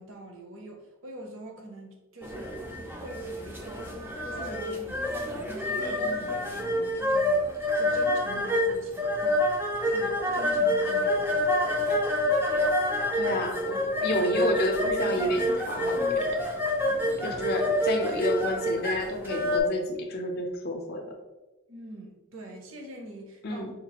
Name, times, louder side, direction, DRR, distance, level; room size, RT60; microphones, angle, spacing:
voice 1, 0.0-2.5 2.9-11.8 17.1-17.4 21.7-23.7, right 1 dB, 60° right, 2 dB, 0.7 m, -44 dB
sound 1, 2.2-19.6, left 1 dB, 10° right, 0.4 m, -27 dB
voice 2, 13.1-16.4 17.2-21.0 23.4-23.7, left 1 dB, 45° left, 3 dB, 0.6 m, -30 dB
5.1 x 2.4 x 2.9 m, 1.1 s
head